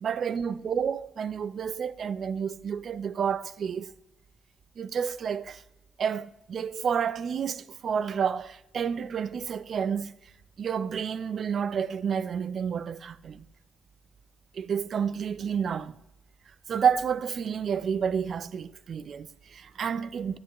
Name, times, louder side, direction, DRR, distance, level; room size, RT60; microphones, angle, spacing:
voice 1, 0.0-3.9 4.8-5.6 6.0-10.1 10.6-13.5 14.5-15.9 16.7-20.4, right 7 dB, 60° right, 0.5 m, -30 dB
20.5 x 7.9 x 3.0 m
supercardioid pair, 60°, 0 cm